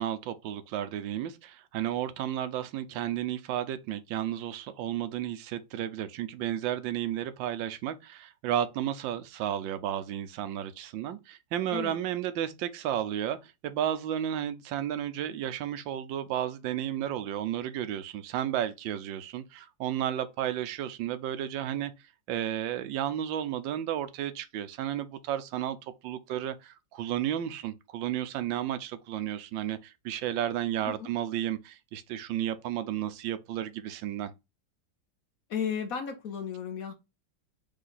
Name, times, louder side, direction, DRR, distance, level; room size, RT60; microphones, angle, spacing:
voice 1, 0.0-21.9 22.3-34.3, right 11 dB, 85° right, 1.3 m, -33 dB
voice 2, 35.5-36.9, left 7 dB, 60° left, 1.0 m, -34 dB
3.8 x 3.3 x 3.9 m
omnidirectional pair, 2.0 m